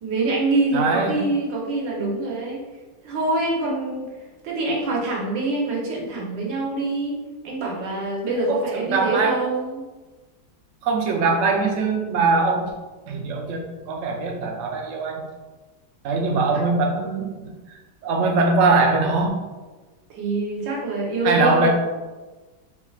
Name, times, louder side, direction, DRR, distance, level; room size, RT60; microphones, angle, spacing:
voice 1, 0.0-2.6 3.0-4.1 4.4-7.1 7.4-9.9 16.5-16.6 20.1-21.7, right 2 dB, 90° right, -3 dB, 1.6 m, -25 dB
voice 2, 0.7-1.2 8.5-9.3 10.8-12.7 13.1-15.2 16.0-17.5 18.0-19.3 21.2-21.7, right 3 dB, 65° right, 1 dB, 0.8 m, -21 dB
4.4 x 3.5 x 2.4 m, 1.2 s
omnidirectional pair, 1.9 m